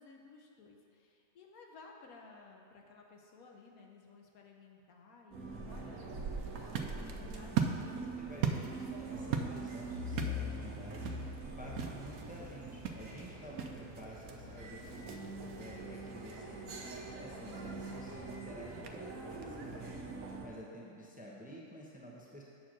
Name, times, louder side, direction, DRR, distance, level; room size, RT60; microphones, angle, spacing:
voice 1, 0.0-7.0 7.3-7.7 8.4-8.5, left 4 dB, 90° left, 1 dB, 1.3 m, -57 dB
sound 1, 5.3-20.5, right 1 dB, 70° right, 1.3 m, -43 dB
sound 2, 6.4-19.9, right 6 dB, 90° right, 1.1 m, -41 dB
voice 2, 6.6-7.1 7.8-11.1 11.6-16.6 17.2-20.1 20.4-22.4, equal, 5° right, -4 dB, 0.8 m, -51 dB
7.7 x 4.5 x 6.3 m, 2.5 s
omnidirectional pair, 1.5 m